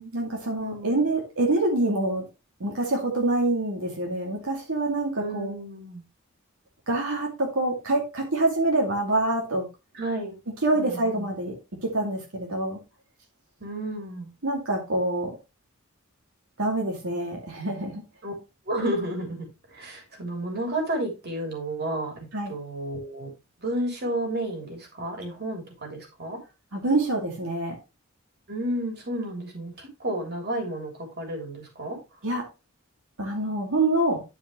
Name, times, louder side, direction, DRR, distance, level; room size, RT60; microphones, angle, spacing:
voice 1, 0.0-2.2 2.6-5.5 6.9-9.7 10.6-12.8 14.4-15.4 16.6-18.0 22.3-22.6 26.7-27.8 32.2-32.5 33.2-34.2, right 2 dB, 85° right, 2.5 m, -26 dB
voice 2, 0.6-1.1 5.2-6.0 9.9-10.4 10.7-11.3 13.6-14.3 18.2-18.3 18.7-22.1 22.5-23.3 23.6-26.4 28.5-32.0, right 1 dB, 50° right, 3.3 m, -32 dB
11.0 x 5.0 x 3.2 m
head